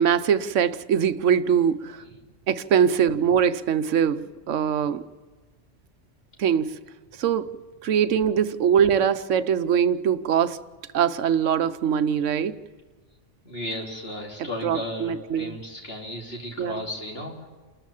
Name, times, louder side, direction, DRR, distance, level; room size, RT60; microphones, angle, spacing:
voice 1, 0.0-2.0 2.5-5.0 6.4-6.8 7.2-10.6 10.9-12.6 14.6-15.5 16.6-16.8, right 8 dB, 80° right, 1.1 m, -22 dB
voice 2, 13.4-17.5, left 1 dB, 55° left, 3.4 m, -35 dB
28.5 x 14.0 x 7.1 m
omnidirectional pair, 1.3 m